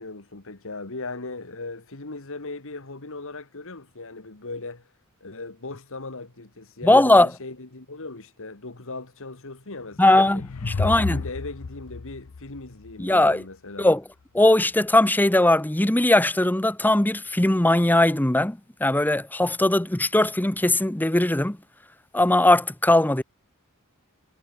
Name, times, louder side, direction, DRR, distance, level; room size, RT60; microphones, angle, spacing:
voice 1, 0.0-4.9 5.2-10.4 10.8-13.9, left 3 dB, 65° left, 2.1 m, -38 dB
voice 2, 6.8-7.3 10.0-11.2 13.0-13.4 13.8-14.0 14.3-21.6 22.1-23.2, left 1 dB, 10° left, 0.8 m, -19 dB
sound 1, 9.8-13.3, left 4 dB, 85° left, 0.6 m, -32 dB
head